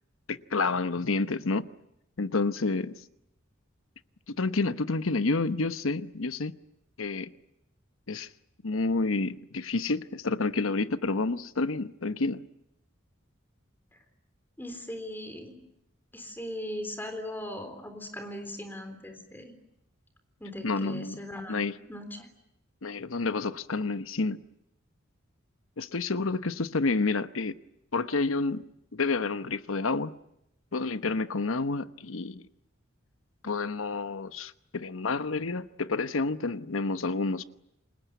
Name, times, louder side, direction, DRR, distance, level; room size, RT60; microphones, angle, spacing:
voice 1, 0.3-1.7 2.2-3.0 4.3-6.5 7.0-7.3 8.1-8.3 8.6-12.4 20.6-21.2 21.5-21.7 22.8-24.4 25.8-27.5 27.9-28.7 28.9-30.1 30.7-32.4 33.4-37.4, left 3 dB, 85° left, 1.0 m, -29 dB
voice 2, 14.6-15.6 16.1-19.5 20.4-22.3, left 1 dB, 10° left, 3.7 m, -39 dB
28.5 x 21.0 x 9.3 m
head